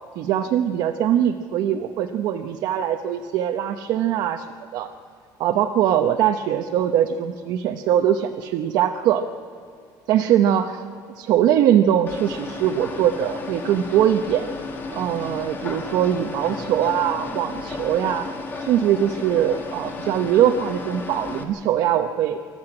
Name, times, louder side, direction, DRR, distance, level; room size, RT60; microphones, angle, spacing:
voice 1, 0.2-4.4 4.7-4.9 5.4-9.2 10.1-10.8 11.2-14.5 14.9-18.3 18.6-22.4, right 10 dB, 60° right, 4 dB, 0.8 m, -21 dB
sound 1, 12.1-21.4, left 3 dB, 25° left, 2.1 m, -33 dB
25.5 x 14.0 x 8.7 m, 2.3 s
cardioid pair, 180°, 8 cm